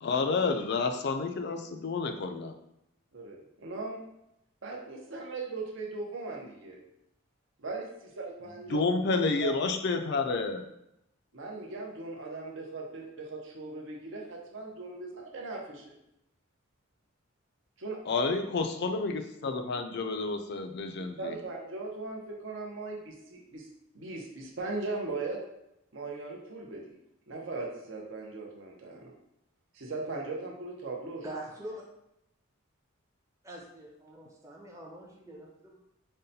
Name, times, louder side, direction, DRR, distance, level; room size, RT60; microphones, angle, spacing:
voice 1, 0.0-2.5 8.7-10.6 18.1-21.3, left 4 dB, 55° left, 6 dB, 0.4 m, -30 dB
voice 2, 3.1-4.0 4.6-6.8 7.6-8.8 9.4-9.5 11.3-16.0 17.8-18.3 21.2-23.7 23.9-25.4 25.9-26.8 27.3-29.1 29.7-31.2, right 3 dB, 65° right, -1 dB, 0.7 m, -38 dB
voice 3, 31.2-31.8 33.4-35.8, right 1 dB, 15° right, -2 dB, 0.6 m, -44 dB
5.3 x 2.2 x 2.7 m, 0.81 s
head